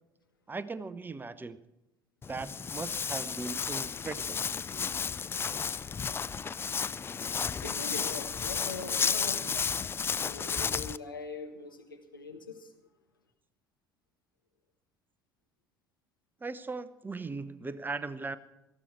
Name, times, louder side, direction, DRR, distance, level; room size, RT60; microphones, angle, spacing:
voice 1, 0.5-1.6 2.3-4.4 16.4-18.4, right 3 dB, 15° right, 0.7 m, -38 dB
Walk footsteps, 2.2-11.0, left 6 dB, 20° left, 0.4 m, -33 dB
voice 2, 7.6-9.6 10.2-12.7, left 4 dB, 85° left, 1.5 m, -42 dB
18.5 x 13.5 x 4.5 m
figure-of-eight pair, 60°, 11 cm